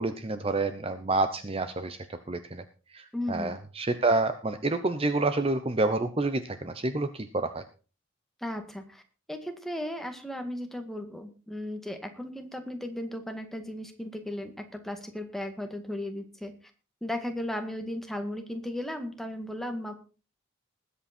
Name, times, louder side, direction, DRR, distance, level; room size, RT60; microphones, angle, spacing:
voice 1, 0.0-2.0 2.3-2.6 2.9-7.6, right 2 dB, 30° right, 10 dB, 0.8 m, -28 dB
voice 2, 3.1-3.5 8.4-9.0 9.3-16.5 17.0-19.9, left 1 dB, ahead, 5 dB, 1.8 m, -36 dB
20.5 x 8.4 x 4.4 m, 0.35 s
head